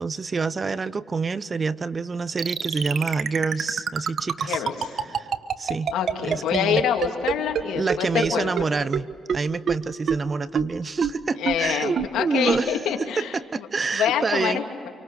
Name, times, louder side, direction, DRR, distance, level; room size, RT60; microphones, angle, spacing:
voice 1, 0.0-4.6 5.0-5.3 5.6-5.9 6.2-6.8 7.7-12.8 13.2-14.6, right 4 dB, 40° right, 17 dB, 0.8 m, -27 dB
sound 1, 2.4-7.6 7.9-8.0 8.2-8.3 8.6-8.7 8.9-9.0 9.3-9.4 9.7-9.8 10.1-10.2 10.6-10.7 11.0-11.1 11.5-11.6 12.0-12.1 12.5-12.6, right 7 dB, 65° right, 1.3 m, -24 dB
voice 2, 4.5-4.9 5.9-8.5 11.4-13.3 13.9-14.9, left 8 dB, 85° left, 3 dB, 2.8 m, -26 dB
28.5 x 24.5 x 6.5 m, 2.2 s
cardioid pair, 75°, 0 cm